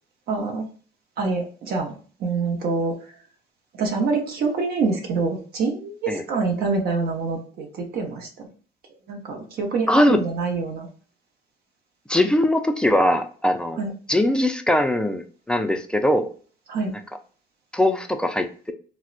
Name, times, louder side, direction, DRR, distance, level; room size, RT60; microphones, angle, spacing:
voice 1, 0.3-0.7 1.2-1.9 2.2-2.9 3.8-8.5 9.1-10.9 13.8-13.9 16.7-16.9, right 4 dB, 65° right, 1 dB, 0.8 m, -25 dB
voice 2, 9.9-10.2 12.1-16.3 17.7-18.7, left 1 dB, 5° left, 7 dB, 0.3 m, -21 dB
4.2 x 2.0 x 2.4 m, 0.42 s
cardioid pair, 110°, 17 cm